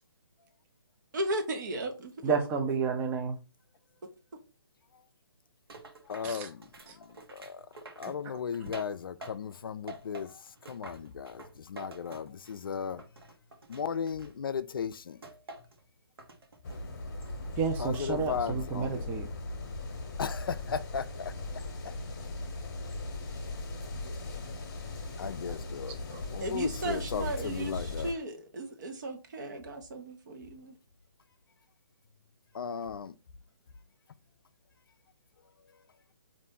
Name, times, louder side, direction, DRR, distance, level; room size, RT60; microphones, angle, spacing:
voice 1, 1.1-2.3 26.4-30.7, right 2 dB, 50° right, 0.9 m, -36 dB
voice 2, 2.2-3.4 6.2-6.5 17.6-19.3 26.1-26.2, right 5 dB, 15° right, 0.4 m, -30 dB
sound 1, 5.7-9.6 9.9-12.7 13.0-14.6 15.2-15.8 16.2-16.8 17.2-18.1 18.5-18.9, right 2 dB, 70° right, 1.1 m, -49 dB
voice 3, 6.1-6.7 7.3-7.6 8.0-10.3 10.7-13.0 13.7-15.2 17.8-19.1 20.2-21.3 21.8-21.9 25.2-26.0 26.3-28.1 32.5-33.1, left 7 dB, 60° left, 0.4 m, -36 dB
sound 2, 16.6-28.1, left 2 dB, 45° left, 0.9 m, -38 dB
4.1 x 2.5 x 3.7 m
figure-of-eight pair, 145°, 13 cm